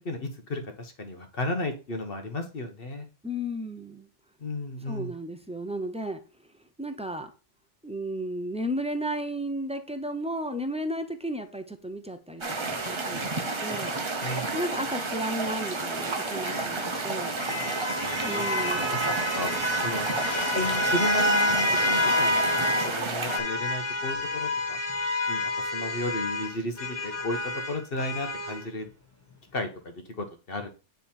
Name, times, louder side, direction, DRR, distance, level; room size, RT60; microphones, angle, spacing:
voice 1, 0.0-3.1 4.4-5.1 14.2-14.5 18.0-18.4 18.8-19.5 19.8-20.2 20.5-22.5 22.8-24.8 25.3-28.9 29.5-30.7, left 2 dB, 50° left, 5 dB, 1.2 m, -34 dB
voice 2, 3.2-4.1 4.9-6.2 6.8-7.3 7.8-14.0 14.5-17.3 18.2-19.0, equal, 10° right, 7 dB, 0.4 m, -34 dB
sound 1, 12.4-23.4, right 3 dB, 30° right, 0.8 m, -31 dB
sound 2, 16.3-23.0 23.3-28.6, left 1 dB, 10° left, 1.8 m, -28 dB
9.1 x 3.5 x 4.4 m, 0.33 s
omnidirectional pair, 1.3 m